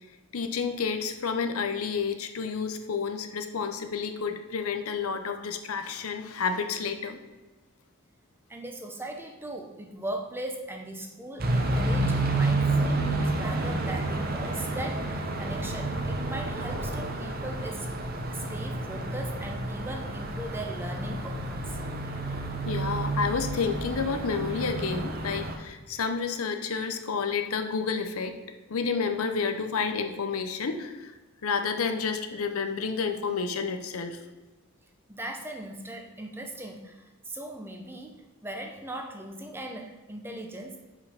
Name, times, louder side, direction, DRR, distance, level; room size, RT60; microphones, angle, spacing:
voice 1, 0.3-7.2 21.9-22.0 22.3-28.4 28.7-31.1 31.4-34.2, left 5 dB, 85° left, 7 dB, 0.7 m, -30 dB
voice 2, 8.5-17.9 18.3-21.8 35.1-40.8, right 1 dB, 10° right, 3 dB, 0.6 m, -39 dB
sound 1, 11.4-25.5, right 2 dB, 45° right, 0.8 m, -30 dB
5.3 x 4.9 x 5.7 m, 1.2 s
head